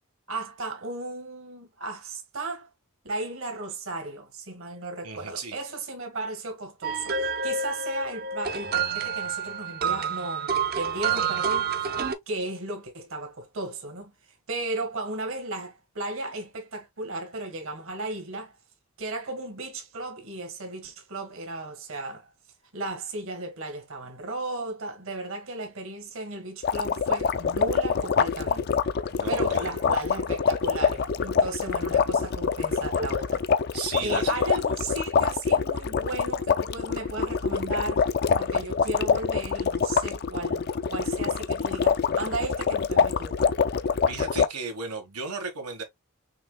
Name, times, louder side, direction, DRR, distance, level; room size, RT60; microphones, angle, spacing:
voice 1, 0.3-2.7 3.0-11.8 12.3-18.5 19.0-22.3 22.7-28.8 29.3-33.4 34.0-38.0 38.4-43.6, right 2 dB, 60° right, 1.6 m, -35 dB
voice 2, 5.0-5.6 29.1-29.9 33.7-34.4 44.1-45.8, right 5 dB, 90° right, 1.6 m, -35 dB
sound 1, 6.8-12.1, right 6 dB, 40° right, 0.6 m, -28 dB
sound 2, 26.6-44.5, left 6 dB, 45° left, 0.4 m, -25 dB
5.8 x 3.3 x 2.2 m
head